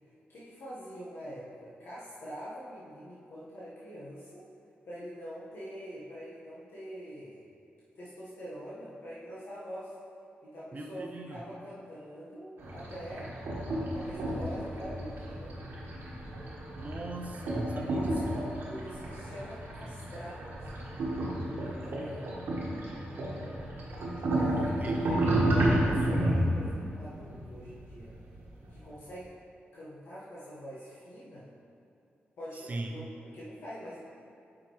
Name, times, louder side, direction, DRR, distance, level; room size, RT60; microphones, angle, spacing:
voice 1, 0.3-4.5 4.8-7.4 7.9-9.9 10.4-13.3 13.9-15.6 17.7-18.2 18.7-20.9 21.6-22.4 24.2-28.1 28.7-29.3 29.7-31.5 32.4-34.0, equal, 75° left, -9 dB, 1.2 m, -44 dB
voice 2, 10.7-11.4 16.7-18.2 23.1-23.7 24.8-25.7 26.0-26.1 32.5-32.9, right 2 dB, 40° right, 2 dB, 0.6 m, -40 dB
sound 1, 12.6-28.7, right 1 dB, 90° right, 1.3 m, -32 dB
8.4 x 5.0 x 3.1 m, 2.6 s
cardioid pair, 85°, 4 cm